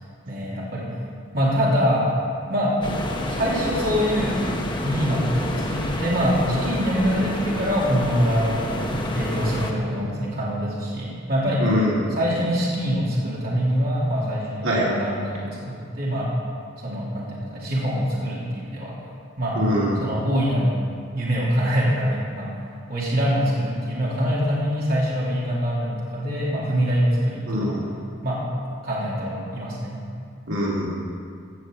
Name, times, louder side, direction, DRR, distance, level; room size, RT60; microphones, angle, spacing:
voice 1, 0.3-0.9 1.3-2.1 2.5-2.8 3.3-4.4 4.8-11.7 12.1-16.3 16.8-18.9 19.4-19.6 20.0-20.8 21.1-22.6 22.9-27.7 28.2-28.4 28.8-30.0, equal, 45° right, -6 dB, 2.9 m, -24 dB
sound 1, 2.8-9.7, left 1 dB, 20° left, 1.0 m, -28 dB
voice 2, 11.6-12.1 14.6-14.9 19.5-20.0 27.5-27.8 30.5-30.9, equal, 75° right, -5 dB, 3.1 m, -23 dB
16.0 x 6.1 x 7.7 m, 2.3 s
head